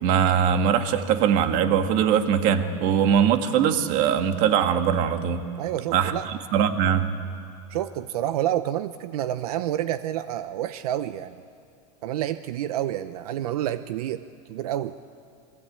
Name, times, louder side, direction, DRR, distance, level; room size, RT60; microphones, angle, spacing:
voice 1, 0.0-5.4 5.9-7.1, right 8 dB, 45° right, 7 dB, 1.9 m, -21 dB
voice 2, 5.6-6.3 7.7-11.4 12.0-14.2 14.5-15.0, right 12 dB, 85° right, 12 dB, 0.8 m, -28 dB
29.5 x 23.0 x 8.8 m, 2.4 s
supercardioid pair, 160°, 19 cm